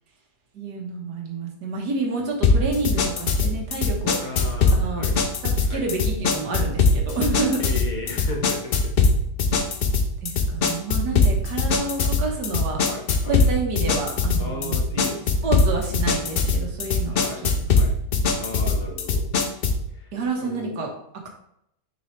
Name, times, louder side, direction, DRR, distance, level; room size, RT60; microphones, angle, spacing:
voice 1, 0.5-4.2 4.7-5.1 5.4-7.6 10.2-12.8 13.3-14.8 15.4-17.7 19.4-19.5 20.1-20.9, right 3 dB, 80° right, 1 dB, 1.9 m, -29 dB
sound 1, 2.4-19.9, left 3 dB, 55° left, 0.6 m, -22 dB
voice 2, 4.2-5.2 5.6-5.9 7.6-9.1 12.8-13.4 14.4-15.5 17.1-18.0 18.4-19.3 19.9-20.1 20.4-20.8, left 3 dB, 30° left, 0 dB, 1.1 m, -35 dB
6.2 x 5.4 x 3.2 m, 0.76 s
omnidirectional pair, 1.7 m